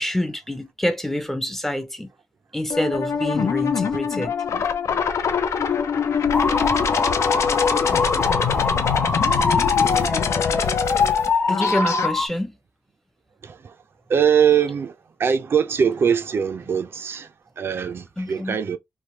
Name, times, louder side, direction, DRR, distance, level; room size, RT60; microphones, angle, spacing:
voice 1, 0.0-2.1 2.5-4.3 11.5-12.5 18.2-18.6, left 1 dB, 5° left, 0.4 m, -26 dB
sound 1, 2.7-12.1, left 6 dB, 90° left, 0.5 m, -23 dB
sound 2, 6.3-12.3, left 4 dB, 45° left, 0.8 m, -23 dB
voice 2, 13.4-13.7 14.1-14.9 15.2-17.3 17.6-18.8, right 7 dB, 55° right, 0.4 m, -22 dB
3.2 x 2.1 x 2.8 m
wide cardioid pair, 165°, 5 cm